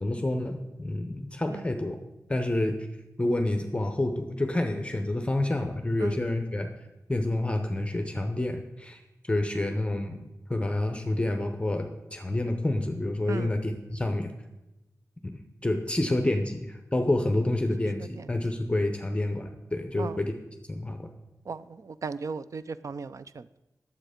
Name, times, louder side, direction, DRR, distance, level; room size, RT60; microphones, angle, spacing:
voice 1, 0.0-2.0 2.3-2.9 3.2-6.7 7.1-9.0 9.3-10.2 10.5-14.3 15.2-20.3 20.7-21.1, left 1 dB, 20° left, 5 dB, 0.7 m, -28 dB
voice 2, 21.5-23.6, right 5 dB, 60° right, 15 dB, 0.4 m, -36 dB
9.0 x 7.2 x 5.0 m, 0.98 s
wide cardioid pair, 90°, 6 cm